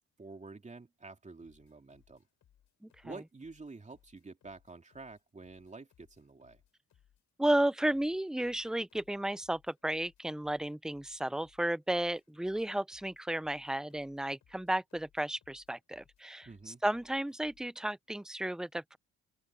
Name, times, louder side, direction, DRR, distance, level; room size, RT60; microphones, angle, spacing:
voice 1, 0.2-2.2 3.0-6.6 16.4-16.8, right 3 dB, 25° right, 3.0 m, -49 dB
sound 1, 1.4-17.7, left 10 dB, 70° left, 7.9 m, -69 dB
voice 2, 7.4-19.0, right 1 dB, ahead, 0.7 m, -33 dB
open air
cardioid pair, 90°, 30 cm